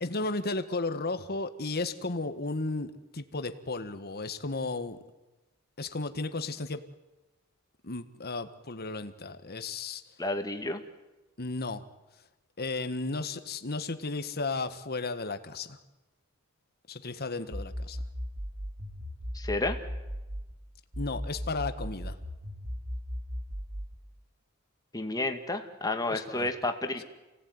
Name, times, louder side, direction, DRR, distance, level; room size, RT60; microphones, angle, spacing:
voice 1, 0.0-5.0 5.8-6.8 7.8-10.0 11.4-11.8 12.6-15.8 16.9-18.0 21.0-22.2 26.1-26.5, left 3 dB, 45° left, 10 dB, 1.6 m, -34 dB
voice 2, 10.2-10.8 19.3-19.8 24.9-27.0, left 2 dB, 15° left, 5 dB, 2.1 m, -31 dB
sound 1, 17.5-20.5 20.9-24.0, equal, 80° right, 4.1 m, -37 dB
28.5 x 18.0 x 9.6 m, 1.1 s
head